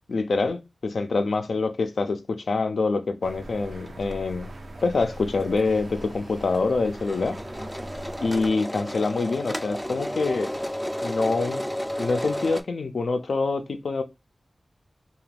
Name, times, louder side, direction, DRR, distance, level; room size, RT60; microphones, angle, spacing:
voice 1, 0.1-4.5 4.8-7.4 8.2-10.5 11.0-11.6 12.0-14.0, left 3 dB, 85° left, 0.4 m, -25 dB
sound 1, 3.2-8.5, right 1 dB, 75° right, 0.4 m, -41 dB
sound 2, 3.9-4.1 4.4-4.5 4.7-12.6, equal, 5° left, 0.3 m, -33 dB
2.4 x 2.3 x 3.2 m
cardioid pair, 45°, 0 cm